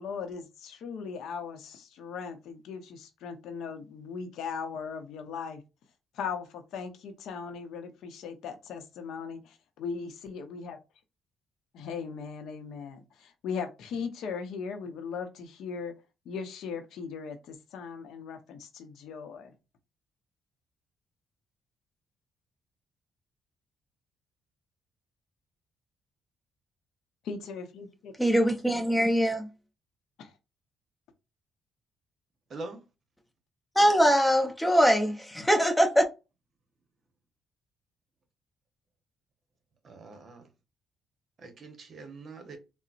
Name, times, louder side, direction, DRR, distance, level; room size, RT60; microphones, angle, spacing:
voice 1, 0.0-5.6 6.1-10.8 11.7-15.9 16.3-19.5 27.2-28.1 30.2-30.3, left 6 dB, 80° left, 0.6 m, -38 dB
voice 2, 28.2-29.5 33.8-36.0, equal, 5° left, 0.8 m, -22 dB
voice 3, 39.8-40.4 41.4-42.6, right 3 dB, 50° right, 0.9 m, -43 dB
3.8 x 2.0 x 2.5 m
cardioid pair, 90°, 0 cm